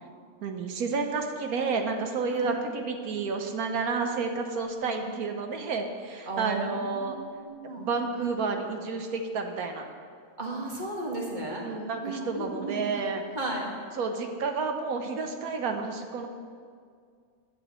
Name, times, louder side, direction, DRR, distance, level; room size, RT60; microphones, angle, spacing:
voice 1, 0.4-7.2 7.8-9.9 11.6-13.2 13.9-16.3, right 4 dB, 80° right, 4 dB, 1.3 m, -30 dB
voice 2, 6.3-7.9 8.2-8.3 10.4-11.6 12.0-12.9 13.3-13.7, right 2 dB, 30° right, -2 dB, 2.0 m, -34 dB
16.0 x 11.0 x 3.1 m, 2.1 s
omnidirectional pair, 1.5 m